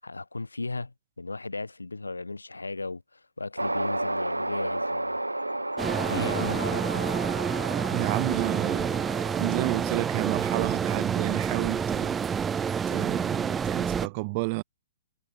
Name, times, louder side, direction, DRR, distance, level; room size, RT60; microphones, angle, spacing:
voice 1, 0.0-5.2 6.1-7.2, left 3 dB, 80° left, 7.1 m, -36 dB
sound 1, 3.6-12.1, right 1 dB, 85° right, 0.7 m, -34 dB
sound 2, 5.8-14.1, right 7 dB, 15° right, 0.9 m, -28 dB
voice 2, 7.9-12.2 12.9-14.6, right 27 dB, 35° right, 1.5 m, -31 dB
figure-of-eight pair, 120°, 0 cm